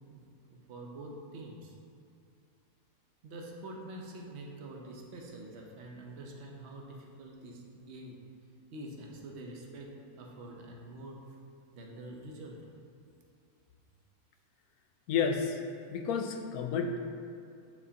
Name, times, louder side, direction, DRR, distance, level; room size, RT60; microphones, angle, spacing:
voice 1, 0.5-1.7 3.2-8.2 8.7-11.2 11.7-12.6, right 1 dB, 50° right, 0 dB, 1.0 m, -46 dB
voice 2, 15.1-15.6 15.9-17.0, left 6 dB, 75° left, 4 dB, 1.0 m, -31 dB
8.9 x 4.5 x 2.8 m, 2.5 s
omnidirectional pair, 1.6 m